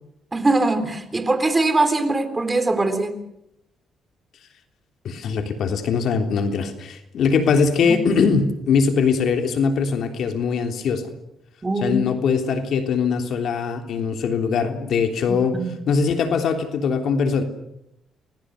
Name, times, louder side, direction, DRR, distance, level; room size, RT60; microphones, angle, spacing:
voice 1, 0.3-3.1 7.8-8.0 11.6-12.0 15.3-15.7, right 2 dB, 20° right, 10 dB, 3.7 m, -22 dB
voice 2, 5.0-11.1 11.8-15.6 15.9-17.4, left 5 dB, 70° left, 6 dB, 3.4 m, -21 dB
29.5 x 22.0 x 6.6 m, 0.82 s
cardioid pair, 90°, 0 cm